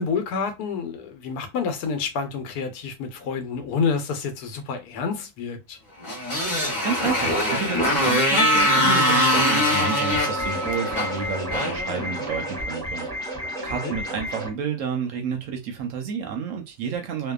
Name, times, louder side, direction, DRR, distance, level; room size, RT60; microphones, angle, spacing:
voice 1, 0.0-5.8 13.6-14.0, left 5 dB, 85° left, 1.2 m, -28 dB
Motorcycle, 6.0-12.5, left 1 dB, 35° left, 0.9 m, -24 dB
voice 2, 6.8-17.3, right 6 dB, 65° right, 0.9 m, -30 dB
Percussion, 8.4-12.3, right 1 dB, 65° left, 0.5 m, -26 dB
sound 1, 10.1-14.5, equal, 5° left, 0.6 m, -32 dB
2.7 x 2.2 x 2.3 m
omnidirectional pair, 1.6 m